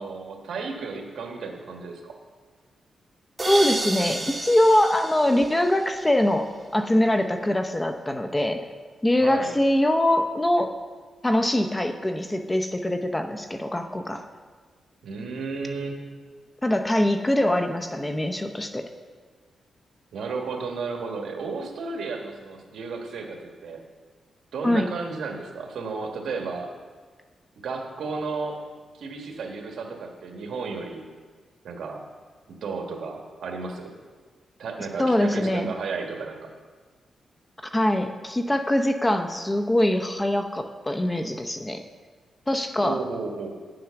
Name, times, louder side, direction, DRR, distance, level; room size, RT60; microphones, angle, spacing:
voice 1, 0.0-2.1 9.2-9.5 15.0-16.1 20.1-23.8 24.5-26.7 27.6-28.6 28.9-31.1 31.6-32.0 32.6-33.9 34.6-36.5 42.8-43.5, right 4 dB, 75° right, 2 dB, 1.6 m, -33 dB
sound 1, 3.4-6.2, right 2 dB, 15° right, 1.5 m, -31 dB
voice 2, 3.5-6.5 6.7-8.6 9.0-10.7 11.2-14.2 16.6-18.9 24.6-24.9 35.0-35.7 37.7-41.8 42.5-43.0, left 1 dB, 15° left, 6 dB, 0.7 m, -23 dB
9.2 x 7.6 x 5.8 m, 1.5 s
cardioid pair, 110°, 0 cm